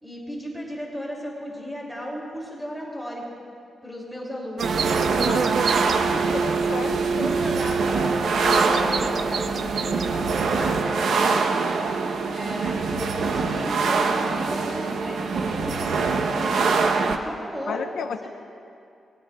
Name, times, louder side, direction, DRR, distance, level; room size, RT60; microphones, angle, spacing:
voice 1, 0.0-3.3 3.8-6.0 6.8-11.6 12.3-15.9 16.3-18.3, equal, ahead, -4 dB, 2.8 m, -35 dB
sound 1, 4.6-10.8, right 6 dB, 55° right, 0.4 m, -31 dB
sound 2, 4.6-17.2, right 4 dB, 75° right, 0.9 m, -24 dB
voice 2, 5.2-5.7 6.1-7.3 17.7-18.3, left 6 dB, 90° left, 6 dB, 0.5 m, -33 dB
26.5 x 20.5 x 2.4 m, 2.5 s
wide cardioid pair, 155°, 0 cm